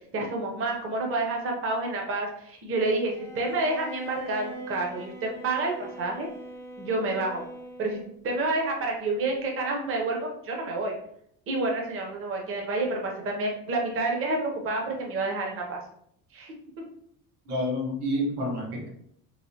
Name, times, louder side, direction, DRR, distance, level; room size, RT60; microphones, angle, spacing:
voice 1, 0.1-6.3 6.8-7.4 7.8-11.0 11.5-15.8 16.3-16.5, right 2 dB, 35° right, 0 dB, 0.7 m, -29 dB
Bowed string instrument, 3.1-8.2, right 1 dB, 5° left, 0.4 m, -42 dB
voice 2, 17.5-18.9, equal, 90° right, -1 dB, 1.3 m, -29 dB
3.1 x 2.9 x 2.7 m, 0.70 s
cardioid pair, 140°, 40 cm